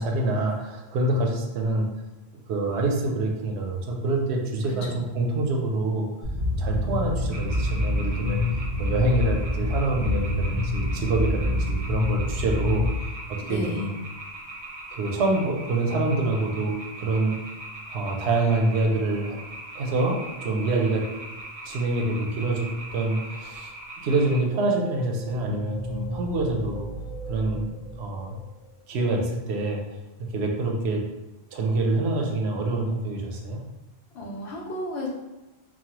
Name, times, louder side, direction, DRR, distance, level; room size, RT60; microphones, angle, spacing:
voice 1, 0.0-1.9 2.5-6.1 6.6-8.4 8.8-12.8 13.5-13.9 14.9-17.4 17.9-19.4 19.7-21.0 21.6-23.7 24.0-26.9 27.3-27.7 28.0-28.4 28.9-29.8 30.3-31.0 31.5-33.6, right 2 dB, 80° right, 1 dB, 0.8 m, -26 dB
voice 2, 4.6-5.0 13.4-13.9 34.1-35.1, left 1 dB, 75° left, -2 dB, 0.9 m, -33 dB
sound 1, 6.2-12.9, left 2 dB, 10° left, 0.6 m, -26 dB
sound 2, 7.3-24.4, right 2 dB, 50° right, 0.4 m, -41 dB
sound 3, 24.2-28.8, equal, 35° left, 1.0 m, -37 dB
3.1 x 2.1 x 2.8 m, 1.1 s
omnidirectional pair, 1.1 m